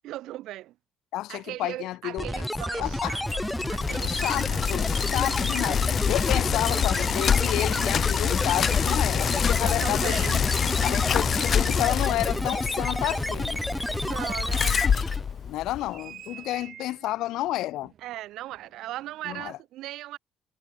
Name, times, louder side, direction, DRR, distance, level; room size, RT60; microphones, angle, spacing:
voice 1, 0.0-0.8 1.3-3.4 3.7-4.8 9.6-10.4 14.0-15.0 18.0-20.2, right 15 dB, 80° right, 2.5 m, -38 dB
voice 2, 1.1-2.4 2.7-3.2 4.0-10.2 10.8-13.7 15.5-17.9 19.3-19.6, left 15 dB, 80° left, 1.8 m, -30 dB
sound 1, 2.2-15.3, equal, ahead, 1.1 m, -31 dB
Bicycle, 2.7-15.9, left 7 dB, 45° left, 0.4 m, -26 dB
sound 2, 11.7-19.4, right 10 dB, 60° right, 5.9 m, -51 dB
cardioid pair, 110°, 0 cm